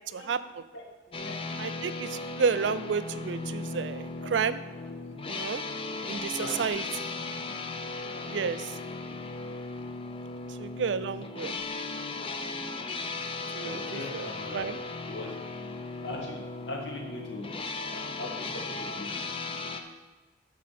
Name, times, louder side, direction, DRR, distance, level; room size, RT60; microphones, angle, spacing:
voice 1, 0.7-1.3 6.3-7.1 9.0-9.2 13.6-14.7 15.1-15.4 16.0-17.6 17.9-19.1, left 2 dB, 70° left, -1 dB, 1.7 m, -40 dB
sound 1, 1.1-19.8, left 3 dB, 30° left, 0.6 m, -37 dB
voice 2, 1.6-4.6 5.3-5.6 6.1-6.8 8.3-8.7 10.6-11.6 13.5-14.8, right 6 dB, 75° right, 13 dB, 0.4 m, -31 dB
13.5 x 4.7 x 4.2 m, 1.2 s
head